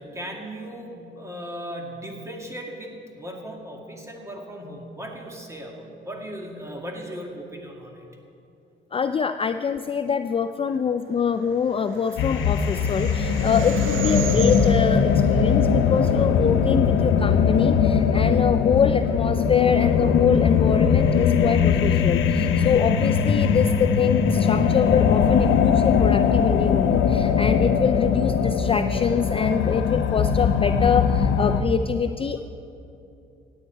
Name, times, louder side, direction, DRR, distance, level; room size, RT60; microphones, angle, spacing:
voice 1, 0.0-8.1, equal, 15° right, 1 dB, 2.0 m, -37 dB
voice 2, 8.9-32.4, left 6 dB, 30° left, 9 dB, 0.4 m, -24 dB
sound 1, 11.3-16.8, right 8 dB, 80° right, 0.7 m, -35 dB
sound 2, 12.2-31.6, left 6 dB, 80° left, 0.8 m, -20 dB
16.5 x 9.1 x 4.5 m, 2.8 s
cardioid pair, 90°, 20 cm